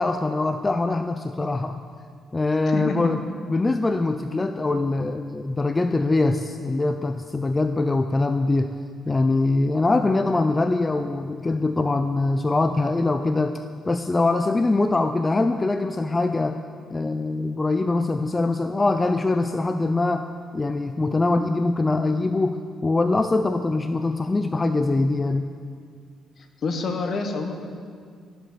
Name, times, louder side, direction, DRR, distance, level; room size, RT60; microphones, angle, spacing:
voice 1, 0.0-1.8 2.3-3.2 3.5-8.7 9.1-16.6 16.9-20.3 20.5-25.5, left 2 dB, 20° left, 8 dB, 0.5 m, -23 dB
voice 2, 2.6-3.1 26.4-27.5, left 3 dB, 55° left, 5 dB, 1.5 m, -28 dB
13.0 x 7.9 x 6.8 m, 2.1 s
cardioid pair, 90°, 0 cm